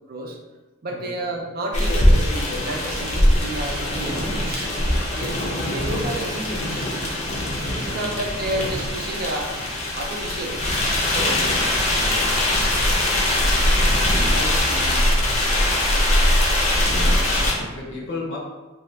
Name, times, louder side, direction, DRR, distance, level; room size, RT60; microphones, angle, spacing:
voice 1, 0.1-0.4 0.8-2.2 2.6-4.7 5.1-6.9 7.7-9.6 9.9-10.6 11.1-12.0 14.2-15.8, right 1 dB, 45° right, 1 dB, 0.4 m, -31 dB
sound 1, 1.7-17.5, left 1 dB, 35° left, 0.6 m, -21 dB
voice 2, 4.0-4.7 7.8-8.4 11.6-12.9 16.6-18.4, left 2 dB, 60° left, -3 dB, 0.8 m, -37 dB
2.7 x 2.3 x 3.3 m, 1.2 s
head